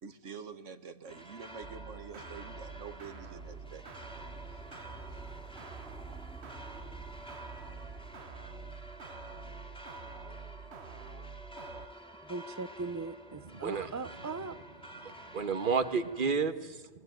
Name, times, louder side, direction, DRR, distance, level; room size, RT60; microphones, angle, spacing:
voice 1, 0.0-3.8 4.5-4.6, right 6 dB, 90° right, 11 dB, 1.8 m, -47 dB
sound 1, 1.1-16.4, right 1 dB, 5° left, 2.9 m, -49 dB
sound 2, 1.6-11.9, right 6 dB, 65° right, 1.4 m, -48 dB
voice 2, 12.3-14.6, right 3 dB, 15° right, 13 dB, 0.8 m, -39 dB
voice 3, 13.3-13.9 15.0-16.9, right 5 dB, 45° right, 11 dB, 1.5 m, -31 dB
29.5 x 21.5 x 9.3 m, 1.3 s
omnidirectional pair, 1.2 m